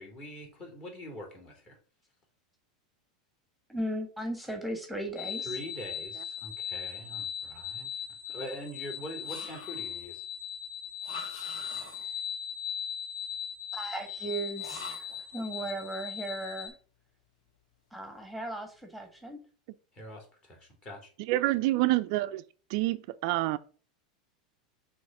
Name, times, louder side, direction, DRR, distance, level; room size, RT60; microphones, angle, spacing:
voice 1, 0.0-1.8 5.4-8.0 8.3-10.2 19.9-21.1, equal, 30° left, 2.8 m, -43 dB
voice 2, 3.7-5.5 13.7-16.7 17.9-19.4, right 1 dB, ahead, 1.3 m, -37 dB
sound 1, 5.2-16.7, left 8 dB, 50° left, 2.8 m, -39 dB
sound 2, 9.2-10.0 11.0-12.2 14.6-15.3, left 3 dB, 70° left, 1.9 m, -44 dB
voice 3, 21.3-22.4 22.7-23.6, right 17 dB, 60° right, 0.4 m, -27 dB
6.3 x 3.1 x 5.8 m
hypercardioid pair, 110°, 4 cm